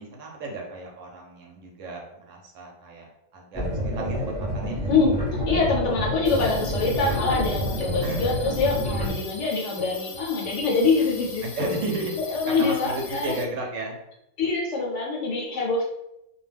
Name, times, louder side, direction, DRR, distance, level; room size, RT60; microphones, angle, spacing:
voice 1, 0.0-4.9 8.0-8.2 11.4-14.0, right 2 dB, 70° right, 0 dB, 0.9 m, -34 dB
sound 1, 3.5-9.1, equal, 10° left, 0.5 m, -28 dB
voice 2, 4.9-11.8 12.3-13.3 14.4-15.8, left 4 dB, 65° left, -1 dB, 0.8 m, -25 dB
sound 2, 6.3-13.4, left 4 dB, 90° left, 1.1 m, -41 dB
2.3 x 2.1 x 3.3 m, 0.85 s
omnidirectional pair, 1.5 m